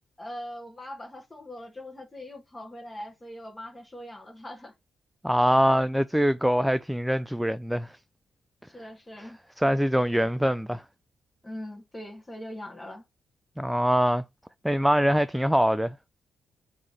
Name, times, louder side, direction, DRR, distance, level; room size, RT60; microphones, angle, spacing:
voice 1, 0.2-4.7 8.6-9.4 11.4-13.0, left 1 dB, 25° left, 1.3 m, -41 dB
voice 2, 5.2-7.9 9.2-9.3 9.6-10.8 13.6-14.2 14.6-16.0, equal, 5° right, 0.3 m, -23 dB
3.8 x 2.9 x 4.7 m
hypercardioid pair, 50°, 0 cm